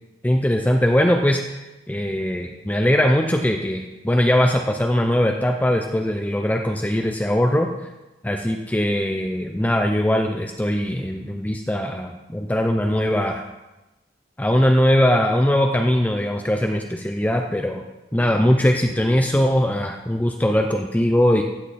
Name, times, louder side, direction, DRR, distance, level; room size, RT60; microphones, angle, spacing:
voice 1, 0.2-1.5 1.9-7.7 8.2-13.4 14.4-17.8 18.1-21.4, equal, 10° left, 3 dB, 0.5 m, -20 dB
15.0 x 7.8 x 4.2 m, 1.0 s
head